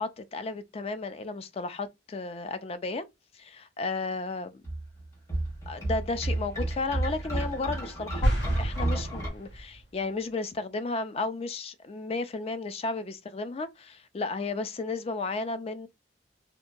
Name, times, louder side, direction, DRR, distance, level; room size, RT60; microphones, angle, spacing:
voice 1, 0.0-3.1 3.3-4.6 5.7-15.9, left 3 dB, 35° left, 0.3 m, -33 dB
sound 1, 4.6-9.3, right 1 dB, 15° left, 1.1 m, -31 dB
sound 2, 8.2-9.8, right 1 dB, 70° left, 1.0 m, -29 dB
2.8 x 2.2 x 2.5 m
head